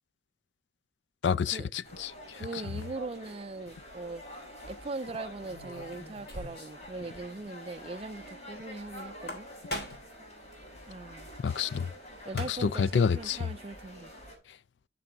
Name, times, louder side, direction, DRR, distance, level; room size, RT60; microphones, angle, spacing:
voice 1, 1.2-2.4 11.4-11.9 12.3-13.5, left 6 dB, 90° left, 0.4 m, -29 dB
sound 1, 1.8-14.4, equal, 40° left, 4.3 m, -47 dB
voice 2, 2.3-4.2 4.7-9.5 10.9-11.3 12.3-14.1, right 3 dB, 35° right, 0.4 m, -40 dB
sound 2, 3.6-3.9 5.4-6.9 7.1-7.2 7.5-7.6 9.1-10.2 11.9-12.0 12.2-12.8, left 1 dB, 60° left, 3.5 m, -41 dB
13.5 x 6.8 x 2.7 m
head